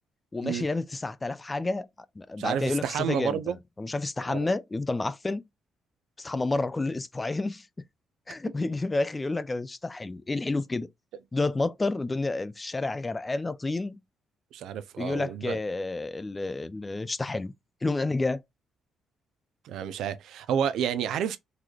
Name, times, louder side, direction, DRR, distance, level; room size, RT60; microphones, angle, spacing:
voice 1, 0.3-1.9 2.2-5.4 6.2-7.7 8.3-10.9 11.3-14.0 15.0-17.5 17.8-18.4, left 2 dB, 20° left, 0.4 m, -30 dB
voice 2, 2.4-3.6 4.3-4.5 14.5-15.6 19.6-21.4, right 8 dB, 80° right, 0.4 m, -30 dB
3.9 x 3.1 x 2.3 m
cardioid pair, 90°, 0 cm